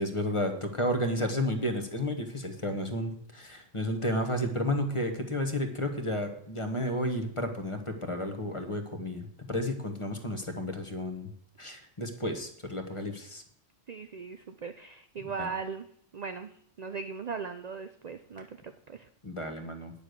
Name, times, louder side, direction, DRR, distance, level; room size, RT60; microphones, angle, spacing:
voice 1, 0.0-11.3 11.6-13.4 15.4-15.5 19.2-19.9, left 1 dB, 25° left, 6 dB, 1.3 m, -32 dB
voice 2, 13.9-15.9 16.1-19.1, right 5 dB, 45° right, 8 dB, 0.5 m, -39 dB
9.8 x 7.0 x 6.6 m, 0.67 s
omnidirectional pair, 1.3 m